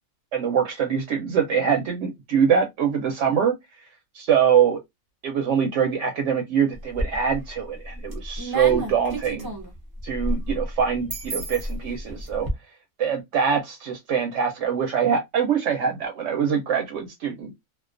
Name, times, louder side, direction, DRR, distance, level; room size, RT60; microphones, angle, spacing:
voice 1, 0.3-3.5 4.1-4.8 5.2-9.5 10.0-12.5 13.0-17.5, right 7 dB, 70° right, 0.9 m, -23 dB
sound 1, 6.7-7.4 7.9-12.5, right 1 dB, 30° right, 0.4 m, -31 dB
2.3 x 2.2 x 2.4 m
omnidirectional pair, 1.3 m